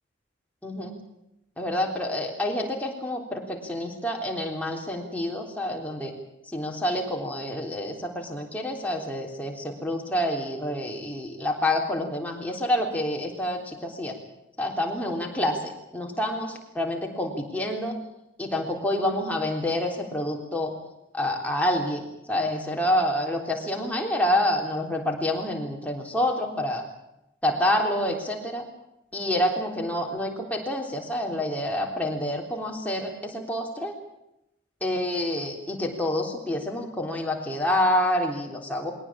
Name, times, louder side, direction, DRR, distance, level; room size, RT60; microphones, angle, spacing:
voice 1, 0.6-1.0 1.6-6.1 6.5-14.2 14.6-18.0 18.4-20.7 21.1-26.8 27.4-28.7 29.1-33.9 34.8-38.9, left 1 dB, 10° left, 1 dB, 3.6 m, -28 dB
22.0 x 18.0 x 8.8 m, 0.84 s
head